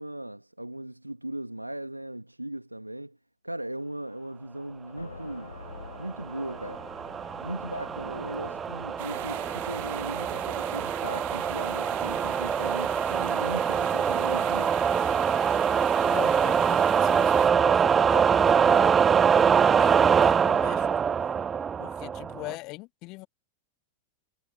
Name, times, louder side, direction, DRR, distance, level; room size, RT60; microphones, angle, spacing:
voice 1, 0.0-3.2 3.4-5.5 6.0-6.8 7.4-14.7, right 1 dB, 85° right, 2.3 m, -38 dB
sound 1, 4.9-10.5, left 3 dB, 80° left, 6.6 m, -47 dB
sound 2, 6.1-22.5, right 7 dB, 20° right, 0.4 m, -24 dB
sound 3, 9.0-17.5, right 22 dB, 50° right, 1.5 m, -39 dB
voice 2, 16.1-19.0 19.3-20.9 21.8-23.3, left 23 dB, 40° left, 2.3 m, -40 dB
figure-of-eight pair, 90°, 0 cm